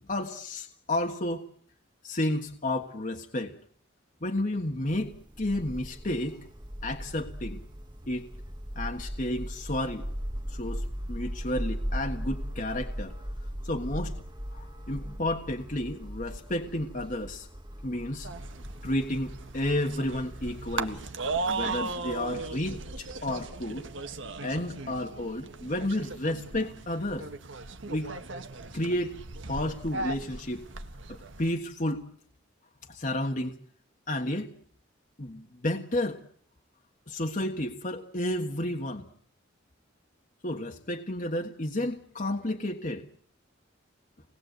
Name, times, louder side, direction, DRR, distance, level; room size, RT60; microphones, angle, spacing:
voice 1, 0.1-1.4 2.0-3.5 4.2-6.4 6.8-7.6 8.1-8.3 8.7-10.0 10.5-13.1 13.6-14.2 14.5-17.5 17.8-18.3 18.8-21.1 21.5-23.8 24.4-27.3 27.8-28.1 28.7-29.1 29.5-30.6 31.1-32.1 32.9-33.6 34.1-34.5 35.2-36.2 37.1-39.1 40.4-43.0, left 1 dB, 40° left, 2 dB, 1.5 m, -31 dB
sound 1, 4.9-21.0, equal, 20° right, 1.7 m, -38 dB
sound 2, 18.2-31.5, right 3 dB, 70° right, 1.5 m, -37 dB
27.5 x 19.5 x 8.1 m, 0.63 s
head